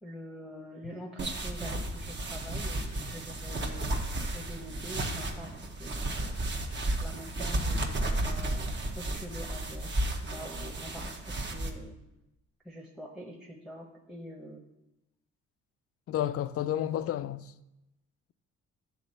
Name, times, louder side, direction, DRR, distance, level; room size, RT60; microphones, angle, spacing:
voice 1, 0.0-3.9 4.3-5.5 5.8-6.7 7.0-9.9 10.2-12.0 12.6-14.6, equal, ahead, 0.9 m, -45 dB
sound 1, 1.2-11.7, right 1 dB, 35° right, 1.0 m, -33 dB
voice 2, 16.1-17.5, left 11 dB, 50° left, 0.4 m, -31 dB
8.1 x 3.8 x 6.5 m
cardioid pair, 90°, 30 cm